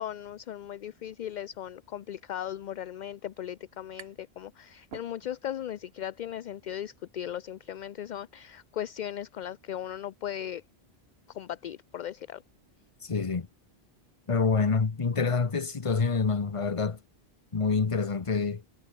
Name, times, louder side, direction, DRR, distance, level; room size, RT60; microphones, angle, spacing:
voice 1, 0.0-10.6 11.3-12.4, left 10 dB, 55° left, 0.6 m, -37 dB
sound 1, 4.0-4.4 4.7-5.6, right 7 dB, 85° right, 1.3 m, -50 dB
voice 2, 13.0-13.5 14.3-17.0 17.5-18.6, left 4 dB, 35° left, 1.0 m, -27 dB
omnidirectional pair, 1.1 m